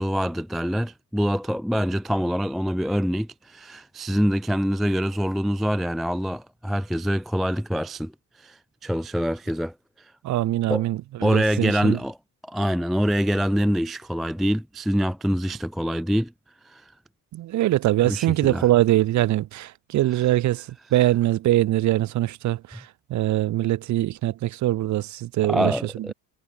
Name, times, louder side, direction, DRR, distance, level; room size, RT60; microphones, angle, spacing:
voice 1, 0.0-8.1 8.4-9.7 10.7-10.8 11.2-12.2 12.4-16.3 16.7-16.8 18.0-18.7 25.4-26.1, equal, ahead, 0.3 m, -25 dB
voice 2, 10.2-12.0 17.3-26.1, right 14 dB, 45° right, 0.9 m, -23 dB
hypercardioid pair, 75°, 40 cm